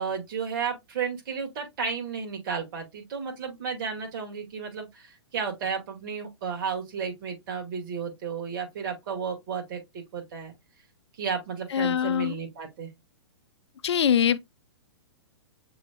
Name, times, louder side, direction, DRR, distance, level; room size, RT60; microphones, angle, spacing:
voice 1, 0.0-10.5 11.2-12.9, right 6 dB, 50° right, 2.3 m, -33 dB
voice 2, 11.7-12.3 13.8-14.4, left 9 dB, 75° left, 0.5 m, -23 dB
6.9 x 3.2 x 2.4 m
hypercardioid pair, 120°, 14 cm